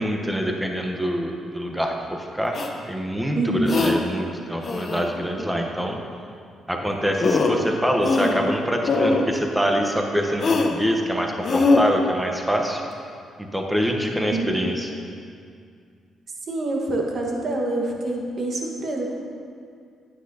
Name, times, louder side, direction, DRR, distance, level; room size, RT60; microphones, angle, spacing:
voice 1, 0.0-2.6 2.9-6.0 6.7-12.8 13.5-14.9, equal, 5° right, 2 dB, 0.9 m, -25 dB
sound 1, 2.5-2.7 3.7-3.9 4.6-5.2 6.8-6.9 7.2-7.7 8.0-8.5 8.8-9.3 10.4-10.7 11.4-11.8, left 3 dB, 45° left, 0.8 m, -21 dB
voice 2, 3.3-3.8 5.4-5.5 14.3-14.6 16.5-19.1, right 2 dB, 50° right, 0 dB, 1.4 m, -26 dB
9.9 x 9.0 x 2.8 m, 2.3 s
cardioid pair, 90°, 0 cm